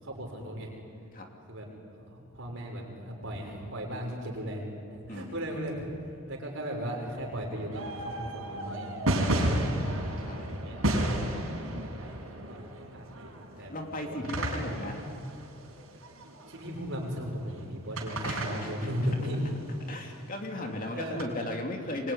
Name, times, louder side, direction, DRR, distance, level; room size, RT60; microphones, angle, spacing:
voice 1, 0.0-0.7 1.5-1.7 2.0-4.6 4.9-5.9 6.2-10.8 11.8-13.7 14.0-15.2 16.5-19.5 20.9-21.2, equal, 60° right, -1 dB, 6.4 m, -37 dB
sound 1, 7.7-17.0 18.0-19.8 21.2-21.3, right 1 dB, 75° right, 5.4 m, -32 dB
voice 2, 10.2-10.6 11.3-11.4 13.6-15.0 18.2-18.9 19.9-22.1, left 1 dB, 40° left, 2 dB, 3.0 m, -36 dB
24.0 x 24.0 x 9.9 m, 2.5 s
head